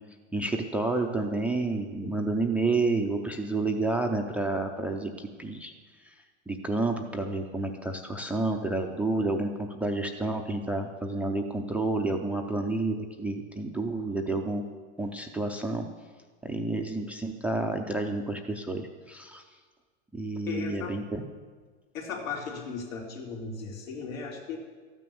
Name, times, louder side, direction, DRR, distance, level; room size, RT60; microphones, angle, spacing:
voice 1, 0.3-5.7 6.1-6.2 6.5-14.6 15.0-15.9 16.4-19.4 20.1-21.2, right 2 dB, 5° right, 4 dB, 0.4 m, -30 dB
voice 2, 20.5-21.0 21.9-24.6, left 5 dB, 85° left, 0 dB, 3.2 m, -36 dB
13.0 x 9.3 x 7.0 m, 1.5 s
supercardioid pair, 135°, 39 cm